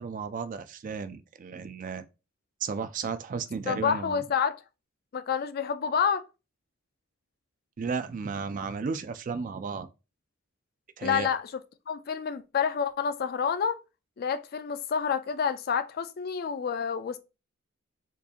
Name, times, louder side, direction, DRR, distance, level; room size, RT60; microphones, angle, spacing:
voice 1, 0.0-2.0 2.6-4.2 7.8-9.9 11.0-11.3, right 5 dB, 40° right, 0.3 m, -34 dB
voice 2, 3.7-4.6 5.1-6.2 11.0-11.5 11.9-13.8 14.2-17.2, left 7 dB, 50° left, 0.4 m, -28 dB
4.5 x 2.4 x 2.8 m
head